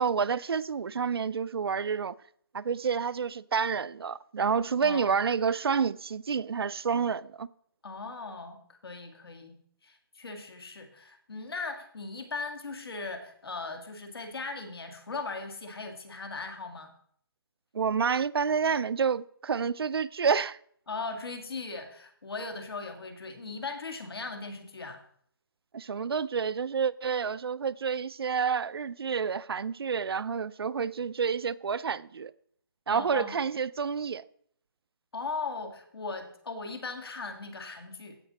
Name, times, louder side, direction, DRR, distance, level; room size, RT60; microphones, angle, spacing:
voice 1, 0.0-2.1 2.5-7.5 17.7-20.6 25.7-32.3 32.9-34.2, right 6 dB, 90° right, 0.4 m, -29 dB
voice 2, 4.8-5.1 7.8-9.5 9.8-16.9 20.9-25.0 32.9-33.5 35.1-38.2, left 3 dB, 85° left, 2.0 m, -38 dB
15.5 x 5.1 x 4.1 m
hypercardioid pair, 170°, 12 cm